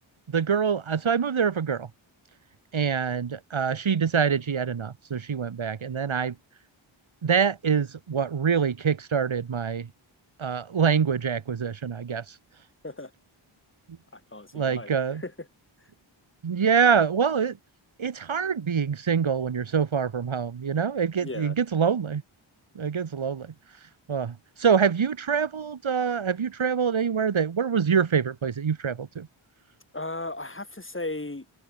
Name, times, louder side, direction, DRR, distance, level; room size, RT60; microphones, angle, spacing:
voice 1, 0.3-1.9 2.7-6.3 7.2-9.9 10.4-12.2 14.5-15.2 16.4-17.5 18.0-22.2 22.8-23.5 24.1-24.3 24.6-29.3, right 6 dB, 70° right, 2.5 m, -25 dB
voice 2, 14.1-15.5 15.8-15.9 21.2-21.6 29.9-31.5, left 2 dB, 25° left, 6.6 m, -36 dB
wide cardioid pair, 70°, 49 cm